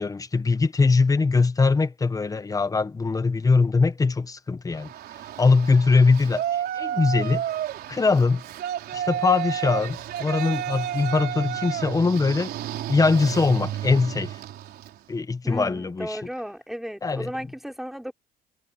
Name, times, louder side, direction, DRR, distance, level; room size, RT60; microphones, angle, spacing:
voice 1, 0.0-4.9 5.4-6.4 6.7-7.4 7.9-8.4 8.9-12.5 12.9-14.4 15.1-16.2 17.0-17.3, left 4 dB, 20° left, 1.1 m, -22 dB
Yell, 4.8-15.0, right 11 dB, 70° right, 4.4 m, -32 dB
voice 2, 15.4-18.1, equal, ahead, 4.1 m, -35 dB
cardioid pair, 110°, 17 cm